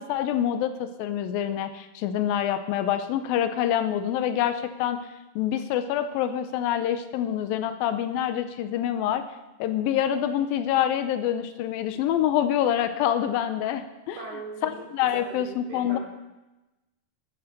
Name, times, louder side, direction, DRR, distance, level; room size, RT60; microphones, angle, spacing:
voice 1, 0.0-5.0 5.4-9.2 9.6-16.0, left 10 dB, 80° left, 10 dB, 2.4 m, -26 dB
voice 2, 14.2-14.7 15.0-16.0, right 3 dB, 70° right, -4 dB, 5.9 m, -39 dB
12.5 x 7.2 x 6.6 m, 1.0 s
omnidirectional pair, 4.2 m